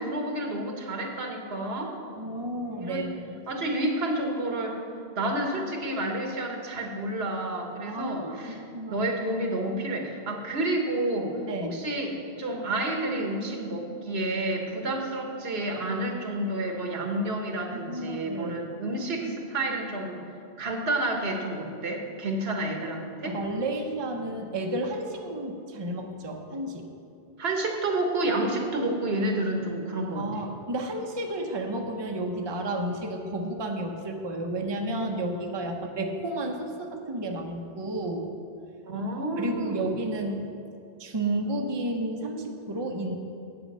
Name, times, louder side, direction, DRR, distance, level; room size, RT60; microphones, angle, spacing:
voice 1, 0.0-2.0 2.8-3.1 3.5-4.8 5.1-11.4 11.7-20.2 20.6-23.4 27.4-30.5 35.7-35.8 38.9-39.9, right 1 dB, 75° right, 3 dB, 1.4 m, -30 dB
voice 2, 2.2-3.4 7.9-9.1 11.5-11.8 17.7-18.5 23.2-26.9 30.1-38.3 39.4-40.5 41.0-43.1, right 1 dB, 30° right, 3 dB, 0.7 m, -32 dB
9.2 x 8.0 x 5.4 m, 2.6 s
omnidirectional pair, 1.0 m